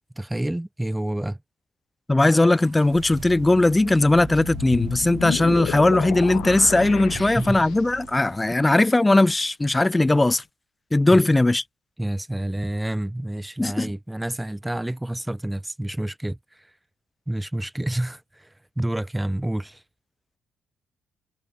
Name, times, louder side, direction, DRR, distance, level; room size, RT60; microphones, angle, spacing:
voice 1, 0.2-1.4 7.1-7.6 11.1-11.2 12.0-16.4 17.3-18.5 18.8-19.8, right 1 dB, 10° right, 1.3 m, -28 dB
voice 2, 2.1-10.4 10.9-11.6 13.6-13.9, left 2 dB, 15° left, 0.7 m, -19 dB
sound 1, 2.5-8.4, right 12 dB, 80° right, 4.5 m, -38 dB
sound 2, 4.1-8.1, left 13 dB, 80° left, 0.6 m, -32 dB
cardioid pair, 90°, 0 cm